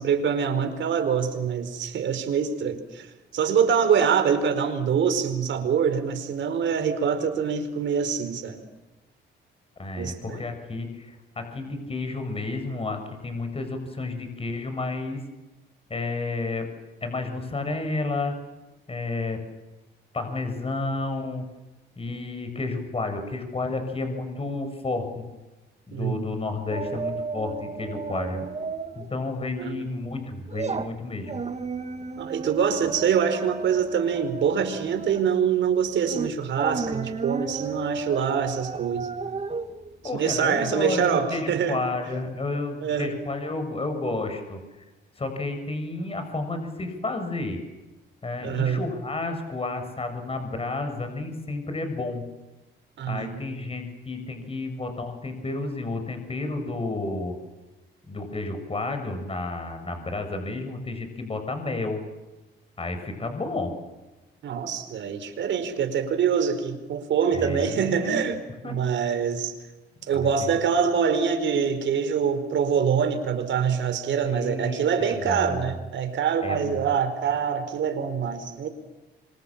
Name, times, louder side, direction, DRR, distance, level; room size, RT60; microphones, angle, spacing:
voice 1, 0.0-3.1 3.3-8.6 10.0-10.4 25.9-26.3 29.6-29.9 32.2-39.1 40.1-41.8 42.8-43.1 48.4-48.8 53.0-53.4 64.4-68.4 68.6-69.5 70.1-78.7, right 7 dB, 70° right, 8 dB, 4.9 m, -25 dB
voice 2, 9.8-15.2 15.9-16.7 17.0-18.3 18.9-19.4 20.1-21.5 22.0-25.2 25.9-28.4 29.0-31.4 40.0-44.6 45.2-47.6 48.2-52.2 53.1-57.3 58.1-62.0 62.8-63.7 67.3-68.3 68.6-69.1 70.1-70.6 74.2-75.7 76.4-76.8, left 2 dB, 30° left, 7 dB, 7.1 m, -31 dB
sound 1, 26.7-29.1 29.4-29.6 30.1-41.0 41.4-41.5, right 4 dB, 35° right, 2.3 m, -33 dB
26.0 x 26.0 x 7.4 m, 1.1 s
cardioid pair, 90°, 20 cm